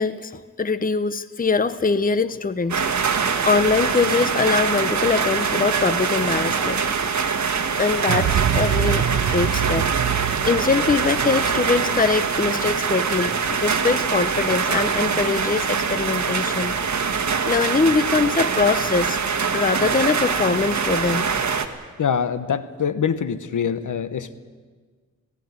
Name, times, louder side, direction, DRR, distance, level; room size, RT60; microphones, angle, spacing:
voice 1, 0.0-2.8 3.5-6.8 7.8-9.9 10.2-16.7 17.4-19.2 19.5-21.3, left 4 dB, 25° left, 13 dB, 0.8 m, -22 dB
sound 1, 2.7-21.7, right 6 dB, 60° right, 1.6 m, -23 dB
sound 2, 8.1-12.8, right 9 dB, 80° right, 0.8 m, -25 dB
voice 2, 22.0-24.3, left 7 dB, 75° left, 13 dB, 1.1 m, -24 dB
19.0 x 17.0 x 9.7 m, 1.5 s
wide cardioid pair, 85°, 31 cm